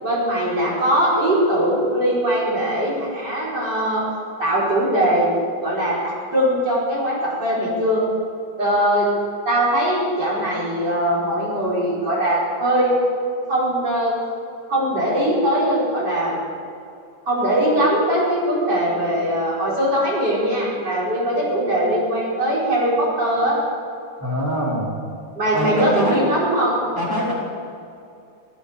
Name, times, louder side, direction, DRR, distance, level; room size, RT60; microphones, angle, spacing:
voice 1, 0.0-4.0 4.4-5.3 5.6-8.0 8.6-9.1 9.5-12.9 13.5-14.1 14.7-16.4 17.3-23.6 25.4-26.8, right 1 dB, 70° right, -6 dB, 5.4 m, -21 dB
voice 2, 24.2-24.9 25.5-26.3 27.0-27.3, equal, 10° left, -6 dB, 3.8 m, -23 dB
15.5 x 13.5 x 6.9 m, 2.6 s
omnidirectional pair, 1.9 m